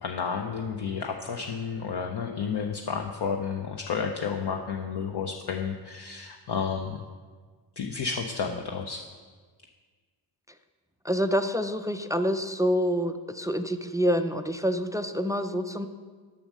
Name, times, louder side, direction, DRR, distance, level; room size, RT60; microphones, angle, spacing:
voice 1, 0.0-7.0 7.8-9.0, left 6 dB, 55° left, 2 dB, 0.7 m, -31 dB
voice 2, 11.0-15.9, equal, 10° right, 8 dB, 0.3 m, -27 dB
6.9 x 6.4 x 6.3 m, 1.5 s
cardioid pair, 70°, 49 cm